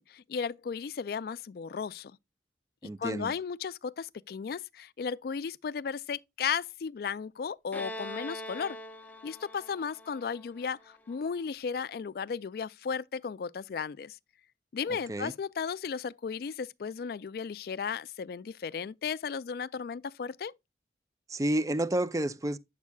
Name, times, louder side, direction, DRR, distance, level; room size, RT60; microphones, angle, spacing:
voice 1, 0.0-2.2 3.0-8.8 9.2-14.2 14.7-20.5, left 6 dB, 55° left, 0.3 m, -35 dB
voice 2, 2.8-3.3 14.9-15.3 21.3-22.6, right 1 dB, 20° right, 0.4 m, -30 dB
Bowed string instrument, 7.7-11.3, left 1 dB, 10° left, 0.7 m, -43 dB
9.5 x 7.2 x 2.3 m
head